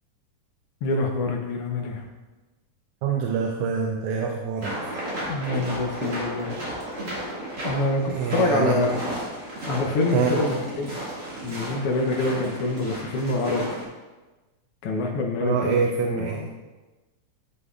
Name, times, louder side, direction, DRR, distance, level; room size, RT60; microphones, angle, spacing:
voice 1, 0.8-2.0 5.3-6.5 7.6-9.0 9.6-10.9 11.4-13.7 14.8-16.5, left 2 dB, 80° left, 2 dB, 1.3 m, -26 dB
voice 2, 3.0-4.7 8.1-8.8 10.1-10.4 15.4-16.4, right 6 dB, 80° right, 0 dB, 2.0 m, -25 dB
sound 1, 4.6-13.8, right 1 dB, 40° right, 2.3 m, -33 dB
11.5 x 5.4 x 2.4 m, 1.2 s
omnidirectional pair, 3.5 m